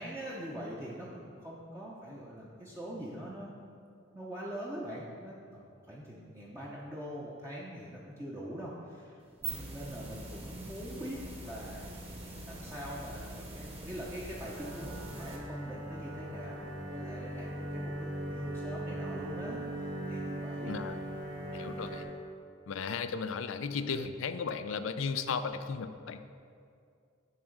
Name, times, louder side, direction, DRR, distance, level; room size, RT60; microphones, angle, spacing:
voice 1, 0.0-3.5 4.1-12.1 12.5-17.9 18.3-20.7 21.0-21.2, equal, 15° right, -6 dB, 0.7 m, -43 dB
sound 1, 9.2-15.4, right 2 dB, 30° right, 1.2 m, -43 dB
sound 2, 14.5-22.0, right 1 dB, 55° right, 2.0 m, -39 dB
voice 2, 20.6-20.9 21.5-22.1 22.7-26.2, left 5 dB, 75° left, 10 dB, 0.4 m, -35 dB
10.5 x 3.6 x 6.4 m, 2.4 s
head